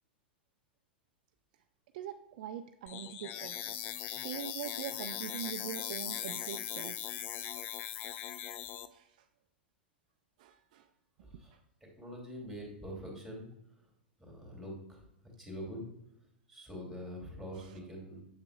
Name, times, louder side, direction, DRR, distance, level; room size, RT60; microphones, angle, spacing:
voice 1, 1.9-3.9 4.2-7.0 7.9-9.3 10.4-10.9 17.6-17.7, right 10 dB, 50° right, 7 dB, 0.4 m, -44 dB
sound 1, 2.9-8.9, left 12 dB, 35° left, 0.4 m, -40 dB
voice 2, 11.2-13.9 14.2-15.8 16.5-18.2, equal, ahead, -2 dB, 2.5 m, -45 dB
7.4 x 7.4 x 2.4 m, 0.84 s
figure-of-eight pair, 95°, 6 cm